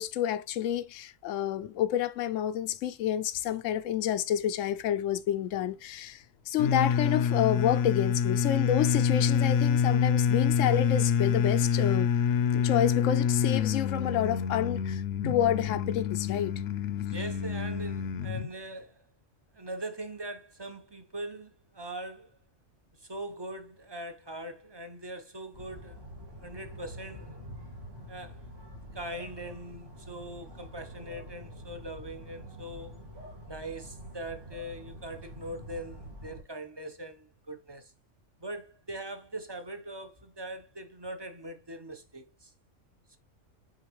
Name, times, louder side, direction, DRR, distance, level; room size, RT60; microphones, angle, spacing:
voice 1, 0.0-12.1 12.5-16.5, left 11 dB, 85° left, 1.0 m, -29 dB
sound 1, 6.6-18.5, left 7 dB, 60° left, 0.9 m, -27 dB
voice 2, 17.1-19.0 19.5-22.4 23.0-26.1 26.4-27.4 28.1-28.7 28.9-33.0 33.5-37.9 38.4-42.5, right 1 dB, 25° right, 0.8 m, -41 dB
sound 2, 25.5-36.4, equal, 70° right, 2.8 m, -46 dB
7.7 x 4.3 x 3.1 m
omnidirectional pair, 1.3 m